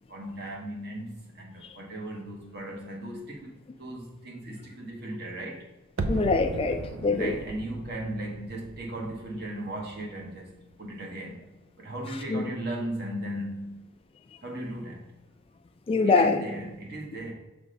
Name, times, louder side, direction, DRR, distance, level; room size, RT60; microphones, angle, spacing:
voice 1, 0.1-5.7 7.1-11.5 11.8-13.8 14.4-15.1 16.0-17.3, right 1 dB, 50° right, -1 dB, 1.3 m, -37 dB
sound 1, 6.0-10.9 11.2-11.3, right 2 dB, 75° right, 0.5 m, -37 dB
voice 2, 6.1-7.3 12.3-12.4 15.9-16.4, left 4 dB, 25° left, 7 dB, 0.3 m, -23 dB
6.0 x 3.3 x 5.3 m, 0.98 s
head